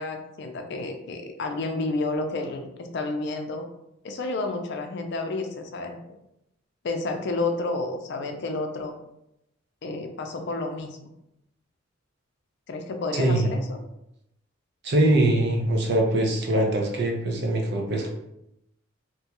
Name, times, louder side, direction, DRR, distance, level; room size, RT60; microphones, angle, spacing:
voice 1, 0.0-3.6 4.0-6.0 6.8-8.9 9.8-11.1 12.7-13.8, left 2 dB, 60° left, 5 dB, 0.4 m, -30 dB
voice 2, 13.1-13.6 14.8-18.1, right 1 dB, 60° right, 2 dB, 0.6 m, -22 dB
3.0 x 2.3 x 2.9 m, 0.82 s
head